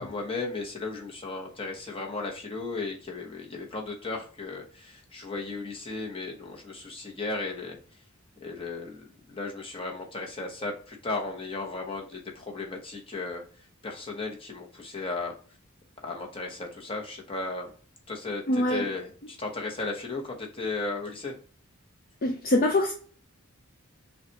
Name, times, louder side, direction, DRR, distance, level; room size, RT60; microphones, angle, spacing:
voice 1, 0.0-7.8 8.4-13.4 13.8-15.4 16.0-17.7 18.1-21.4, left 3 dB, 25° left, -1 dB, 0.9 m, -35 dB
voice 2, 18.5-18.9 22.2-22.9, left 1 dB, 40° left, 3 dB, 0.5 m, -24 dB
5.5 x 2.3 x 2.8 m, 0.43 s
head